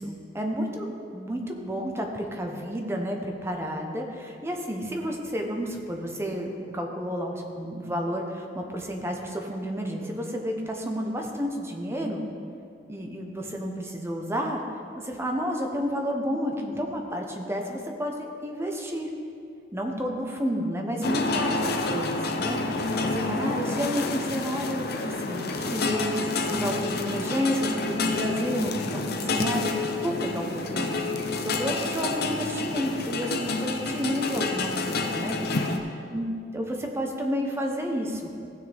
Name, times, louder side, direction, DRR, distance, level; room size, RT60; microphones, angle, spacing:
voice 1, 0.0-12.2 12.9-14.6 15.0-19.1 19.7-21.6 21.9-22.7 23.0-35.3 35.8-36.3 36.5-38.4, equal, 15° right, 2 dB, 0.9 m, -31 dB
sound 1, 21.0-35.8, left 3 dB, 60° left, 0.7 m, -29 dB
15.5 x 6.6 x 3.5 m, 2.5 s
head